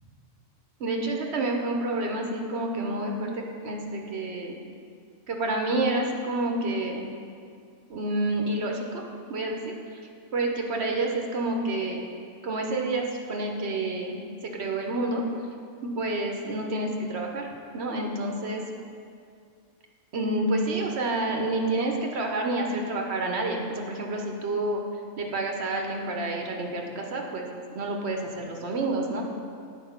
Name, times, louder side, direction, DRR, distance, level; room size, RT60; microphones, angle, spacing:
voice 1, 0.8-4.6 5.3-7.0 7.9-9.0 9.3-9.6 9.9-10.0 10.3-12.0 12.4-14.2 14.5-15.2 16.0-17.5 17.7-18.6 20.1-24.8 25.2-27.5 27.7-29.2, right 2 dB, 55° right, 1 dB, 1.0 m, -28 dB
9.4 x 5.0 x 5.7 m, 2.3 s
omnidirectional pair, 1.4 m